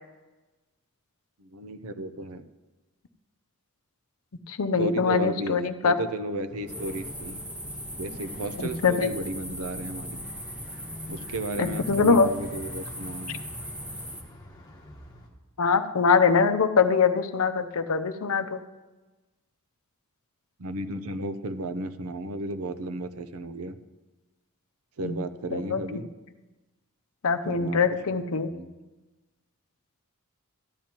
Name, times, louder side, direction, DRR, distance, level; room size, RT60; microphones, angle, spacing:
voice 1, 1.4-2.5 4.8-7.4 7.9-10.2 11.1-13.4 20.6-23.7 25.0-26.0 27.4-27.8 28.5-28.7, right 2 dB, 75° right, 11 dB, 0.7 m, -34 dB
voice 2, 4.5-5.9 8.6-9.1 11.6-12.3 15.6-18.6 25.0-25.2 25.5-25.8 27.2-28.5, left 5 dB, 70° left, 9 dB, 0.6 m, -23 dB
sound 1, 6.5-15.3, left 1 dB, 20° left, 1.4 m, -46 dB
sound 2, 6.7-14.2, equal, 5° right, 0.9 m, -39 dB
14.0 x 10.5 x 2.9 m, 1.1 s
head